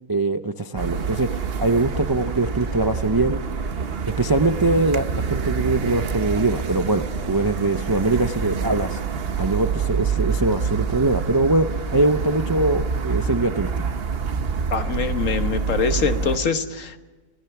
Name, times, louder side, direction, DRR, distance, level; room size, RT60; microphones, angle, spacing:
voice 1, 0.1-3.4 4.2-9.0 9.4-13.7, right 2 dB, 30° right, 8 dB, 0.4 m, -22 dB
sound 1, 0.8-16.4, right 5 dB, 45° right, 1.1 m, -27 dB
voice 2, 14.7-17.0, left 5 dB, 60° left, 8 dB, 1.5 m, -24 dB
28.0 x 17.5 x 6.0 m, 1.2 s
omnidirectional pair, 1.5 m